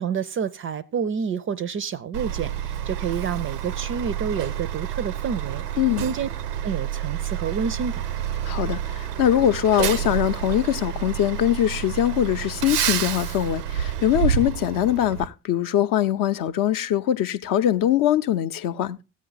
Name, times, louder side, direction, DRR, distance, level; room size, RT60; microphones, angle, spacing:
voice 1, 0.0-5.6 6.0-6.3 6.6-8.1, right 7 dB, 30° right, 0.5 m, -28 dB
Truck, 2.1-15.3, right 10 dB, 80° right, 0.6 m, -29 dB
voice 2, 8.4-19.0, left 11 dB, 45° left, 0.6 m, -22 dB
14.5 x 8.5 x 3.9 m
figure-of-eight pair, 50°, 46 cm